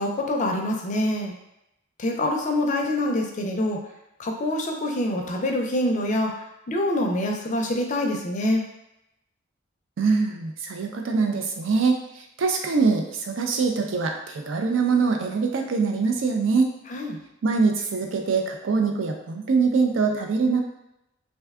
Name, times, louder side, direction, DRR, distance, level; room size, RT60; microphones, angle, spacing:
voice 1, 0.0-1.3 2.0-3.8 4.2-6.3 6.7-8.6 16.9-17.2, left 1 dB, 40° left, 2 dB, 0.4 m, -25 dB
voice 2, 10.0-16.7 17.4-20.6, right 4 dB, 75° right, 3 dB, 0.4 m, -23 dB
2.6 x 2.2 x 3.5 m, 0.88 s
head